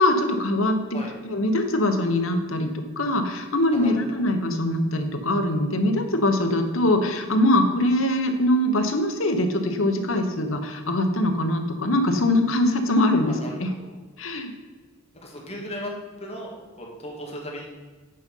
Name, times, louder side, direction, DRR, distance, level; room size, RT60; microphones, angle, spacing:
voice 1, 0.0-13.7 14.2-14.5, left 1 dB, 75° left, 6 dB, 1.1 m, -23 dB
voice 2, 13.4-13.9 15.2-15.9 16.2-17.6, equal, 30° left, -2 dB, 2.2 m, -36 dB
9.1 x 5.5 x 5.4 m, 1.4 s
head